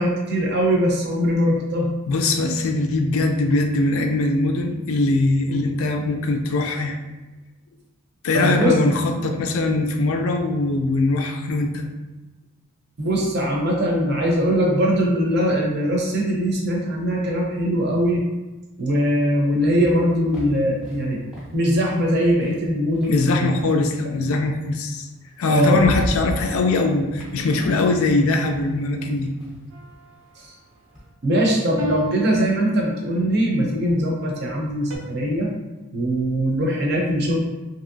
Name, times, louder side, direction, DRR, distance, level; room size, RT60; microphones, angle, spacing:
voice 1, 0.0-1.9 5.5-5.6 8.3-8.7 13.0-18.3 18.8-21.2 21.5-23.6 24.0-24.1 25.5-25.9 30.4-30.5 31.2-35.5 35.9-37.4, equal, 50° right, -1 dB, 0.6 m, -21 dB
voice 2, 2.1-7.0 8.2-11.9 23.1-25.1 25.4-29.3, left 2 dB, 75° left, 4 dB, 0.4 m, -21 dB
sound 1, 19.1-23.7 24.9-25.0 25.4-31.1, equal, 5° right, 0.5 m, -36 dB
sound 2, 29.7-30.4 31.8-33.4 34.9-35.0, equal, 90° right, 0.5 m, -34 dB
2.9 x 2.6 x 2.6 m, 1.1 s
head